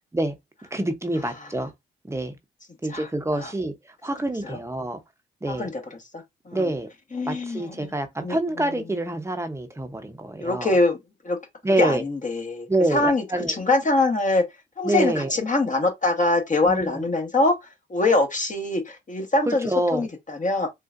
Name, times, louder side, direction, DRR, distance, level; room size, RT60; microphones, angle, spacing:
voice 1, 0.7-1.7 2.0-2.4 2.8-3.7 4.0-5.0 5.4-5.7 6.5-6.9 7.3-10.7 11.6-12.0 12.7-13.5 14.8-15.3 16.7-17.0 19.5-20.0, right 1 dB, 15° right, 0.8 m, -26 dB
voice 2, 2.9-3.5 4.4-4.6 5.5-5.7 6.1-6.7 7.1-7.9 8.2-8.8 10.4-11.0 11.2-11.4 11.8-14.4 14.8-20.7, left 2 dB, 40° left, 1.3 m, -24 dB
3.7 x 2.4 x 2.5 m
supercardioid pair, 60°, 21 cm